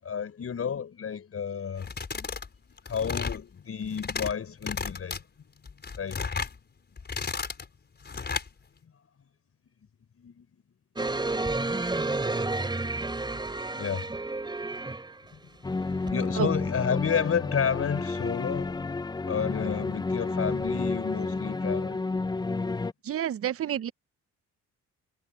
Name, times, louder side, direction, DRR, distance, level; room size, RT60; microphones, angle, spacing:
voice 1, 0.0-2.4 2.9-5.2 6.0-6.2 10.2-10.5 13.8-14.1 15.3-15.4 15.9-18.7 19.3-22.0, left 7 dB, 50° left, 5.9 m, -31 dB
sound 1, 1.8-2.5 2.8-3.4 3.8-4.3 4.6-5.2 5.7-6.5 7.0-7.6 8.0-8.5, left 5 dB, 35° left, 4.7 m, -33 dB
sound 2, 11.0-15.3 16.1-16.2, right 2 dB, 15° right, 2.7 m, -30 dB
sound 3, 15.6-22.9, left 3 dB, 15° left, 0.5 m, -30 dB
voice 2, 23.0-23.9, right 10 dB, 50° right, 0.8 m, -29 dB
cardioid pair, 90°, 30 cm